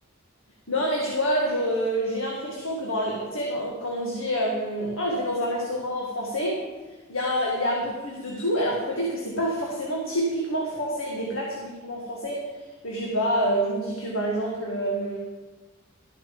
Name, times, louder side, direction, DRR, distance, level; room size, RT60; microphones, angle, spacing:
voice 1, 0.7-6.6 7.1-12.5 12.8-15.3, equal, 75° left, -2 dB, 1.9 m, -27 dB
13.0 x 9.3 x 5.3 m, 1.2 s
head